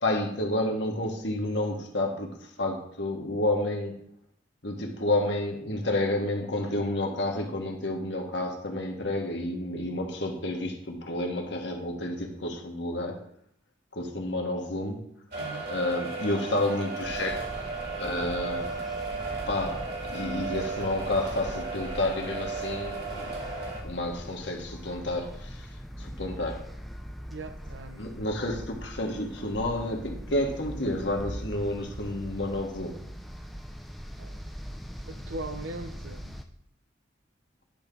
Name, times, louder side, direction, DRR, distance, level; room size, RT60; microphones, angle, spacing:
voice 1, 0.0-4.0 4.6-13.2 13.9-15.0 15.7-17.5 18.0-18.8 19.5-23.3 23.8-25.7 26.0-26.6 28.0-33.0, left 1 dB, 65° left, 2 dB, 1.4 m, -30 dB
sound 1, 15.3-23.8, right 3 dB, 55° right, 1.9 m, -35 dB
voice 2, 15.4-15.7 27.3-28.3 34.2-34.6 35.0-36.3, right 2 dB, 75° right, 7 dB, 0.9 m, -40 dB
sound 2, 17.0-36.4, equal, ahead, 0.4 m, -41 dB
10.5 x 3.6 x 5.3 m, 0.69 s
head